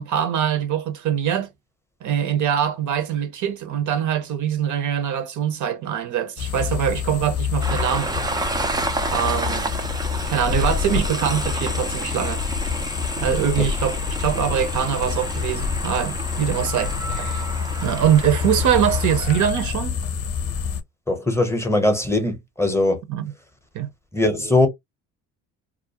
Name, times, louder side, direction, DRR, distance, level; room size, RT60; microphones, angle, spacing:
voice 1, 0.0-1.5 2.0-8.1 9.1-9.7 10.3-12.4 13.2-17.4 17.8-20.0 23.1-23.3 23.7-23.9, right 9 dB, 50° right, 0.6 m, -23 dB
sound 1, 6.4-20.8, left 6 dB, 40° left, 0.6 m, -27 dB
Train, 7.6-19.5, right 2 dB, 10° right, 0.3 m, -31 dB
voice 2, 21.1-23.0 24.1-24.7, left 2 dB, 5° left, 0.7 m, -20 dB
2.4 x 2.1 x 2.7 m
supercardioid pair, 95°, 37 cm